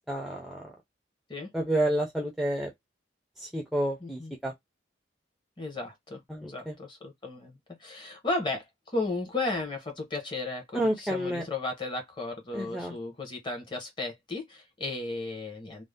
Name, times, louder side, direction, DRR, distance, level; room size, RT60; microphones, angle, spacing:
voice 1, 0.1-0.7 1.5-2.7 3.4-4.5 6.3-6.7 10.7-11.4 12.5-13.0, right 1 dB, ahead, 0.4 m, -30 dB
voice 2, 4.0-4.3 5.6-15.9, left 3 dB, 25° left, 0.8 m, -35 dB
2.6 x 2.1 x 3.3 m
head